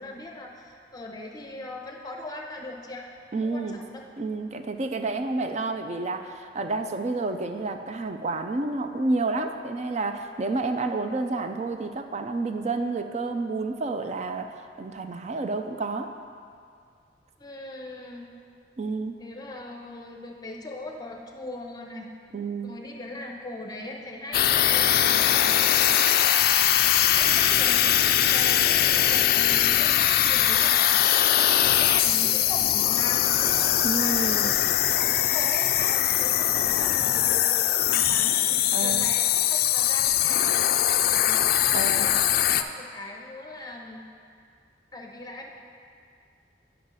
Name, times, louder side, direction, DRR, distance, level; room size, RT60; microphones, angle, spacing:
voice 1, 0.0-3.1 3.4-4.0 17.4-18.2 19.2-22.1 22.6-25.6 27.1-38.5 38.8-41.5 41.8-44.0 44.9-45.5, left 2 dB, 20° left, 1 dB, 0.8 m, -39 dB
voice 2, 3.3-3.8 4.2-14.5 14.8-16.1 18.8-19.1 22.3-22.7 33.8-34.5 38.7-39.1 41.7-42.1, right 3 dB, 40° right, 7 dB, 0.4 m, -29 dB
sound 1, 24.3-42.6, left 11 dB, 55° left, 0.3 m, -21 dB
10.5 x 5.6 x 4.0 m, 2.3 s
head